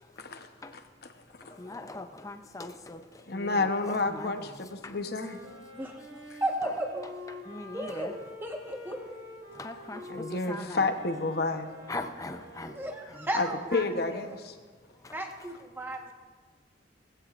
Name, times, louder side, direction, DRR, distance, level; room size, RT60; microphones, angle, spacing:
voice 1, 0.7-1.1 1.4-1.7 3.3-5.4 10.1-11.7 13.3-14.5, left 3 dB, 60° left, 7 dB, 0.9 m, -30 dB
voice 2, 1.6-3.0 3.3-3.5 4.2-4.3 4.8-4.9 7.5-8.1 9.6-10.0 10.5-10.8 11.9-12.7, left 2 dB, 20° left, 7 dB, 0.5 m, -39 dB
Wind instrument woodwind instrument, 4.9-13.3, left 2 dB, 80° right, 3.0 m, -47 dB
voice 3, 6.4-7.0 7.7-9.2 12.6-13.8 15.1-16.1, right 1 dB, 10° right, 1 dB, 1.2 m, -34 dB
18.5 x 15.5 x 2.5 m, 1.5 s
head